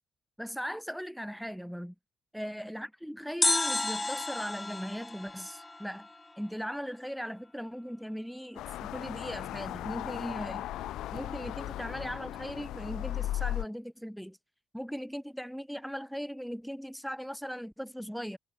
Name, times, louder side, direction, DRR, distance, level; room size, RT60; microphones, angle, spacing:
voice 1, 0.4-1.9 2.3-6.1 6.4-10.7 11.1-14.4 14.7-18.4, equal, ahead, 2.1 m, -38 dB
sound 1, 3.4-6.5 6.7-6.8, left 2 dB, 15° left, 4.6 m, -32 dB
sound 2, 8.6-13.6, left 14 dB, 85° left, 3.1 m, -36 dB
cardioid pair, 90°, 0 cm